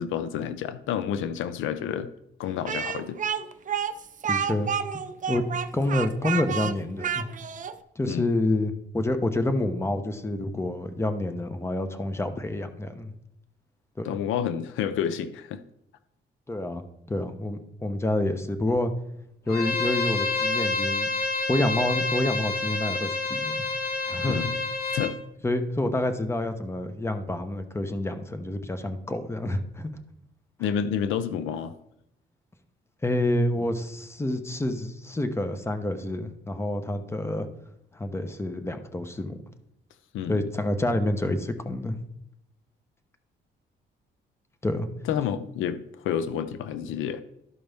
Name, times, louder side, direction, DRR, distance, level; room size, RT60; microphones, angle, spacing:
voice 1, 0.0-2.1 2.4-3.2 8.1-8.3 14.0-15.6 24.3-24.5 24.9-25.2 30.6-31.7 40.1-40.4 45.0-47.2, left 8 dB, 85° left, 12 dB, 0.5 m, -29 dB
Speech, 2.6-7.7, right 7 dB, 40° right, 0.6 m, -30 dB
voice 2, 4.3-4.7 5.3-5.4 5.7-7.3 8.0-13.1 14.0-14.1 16.5-16.8 17.1-18.9 19.5-21.1 21.5-23.6 24.1-24.5 25.4-29.9 33.0-37.5 37.9-39.4 40.2-42.0 44.6-44.9, left 1 dB, 15° left, 9 dB, 0.9 m, -28 dB
Bowed string instrument, 19.5-25.1, left 3 dB, 50° left, 1.2 m, -28 dB
12.5 x 5.1 x 3.5 m, 0.81 s
cardioid pair, 90°, 20 cm